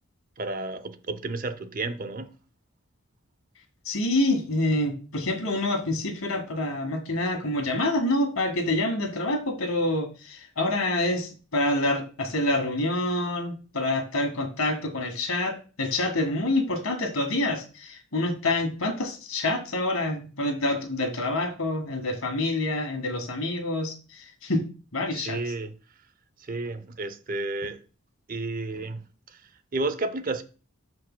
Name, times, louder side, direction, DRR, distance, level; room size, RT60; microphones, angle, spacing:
voice 1, 0.4-2.3 25.1-25.7 26.4-27.8 28.3-30.4, right 2 dB, 40° right, 0.6 m, -32 dB
voice 2, 3.9-24.6 24.9-25.4, left 1 dB, 75° left, 1.8 m, -27 dB
13.5 x 4.8 x 2.2 m
head